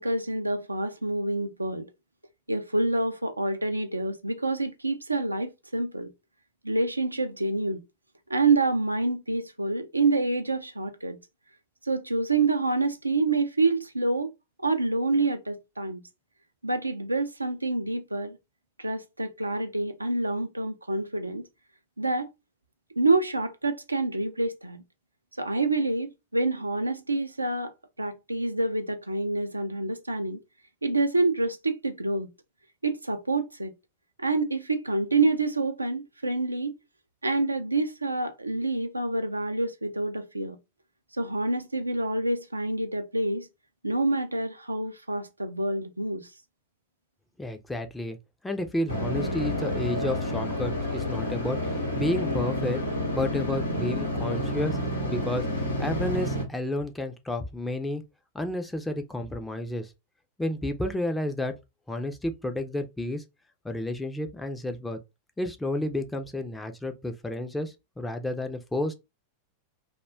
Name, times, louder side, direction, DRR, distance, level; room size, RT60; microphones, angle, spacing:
voice 1, 0.0-1.9 2.5-6.1 6.6-7.8 8.3-11.2 11.8-14.3 14.6-16.0 16.6-18.4 18.8-21.4 22.0-22.3 23.0-24.8 25.4-27.7 28.0-30.4 30.8-32.3 32.8-33.7 34.2-36.8 37.2-40.6 41.2-43.5 43.8-46.3, right 3 dB, 85° right, 0.3 m, -27 dB
voice 2, 47.4-48.2 48.4-52.8 53.1-54.8 55.0-55.5 55.8-58.0 58.3-59.9 60.4-61.5 61.9-63.2 63.6-65.0 65.4-68.9, left 1 dB, 5° left, 0.4 m, -31 dB
sound 1, 48.9-56.4, left 1 dB, 85° left, 0.8 m, -29 dB
2.3 x 2.1 x 3.3 m
figure-of-eight pair, 90°, 0 cm